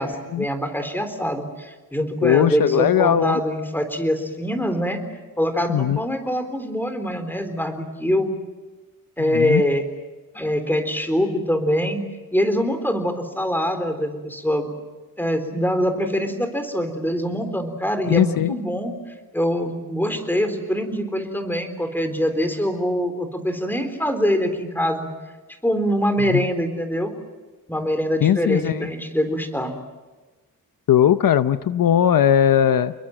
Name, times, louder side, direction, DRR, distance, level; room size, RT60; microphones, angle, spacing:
voice 1, 0.0-5.0 5.4-8.3 9.2-9.8 10.3-12.0 12.3-14.7 15.2-18.9 19.3-25.1 25.6-27.1 27.7-29.7, equal, 5° left, 7 dB, 3.8 m, -24 dB
voice 2, 2.2-3.4 5.7-6.0 9.3-9.6 18.1-18.6 26.3-26.4 28.2-28.9 30.9-32.9, left 10 dB, 70° left, 12 dB, 0.8 m, -18 dB
30.0 x 21.5 x 7.8 m, 1.2 s
wide cardioid pair, 110°, 35 cm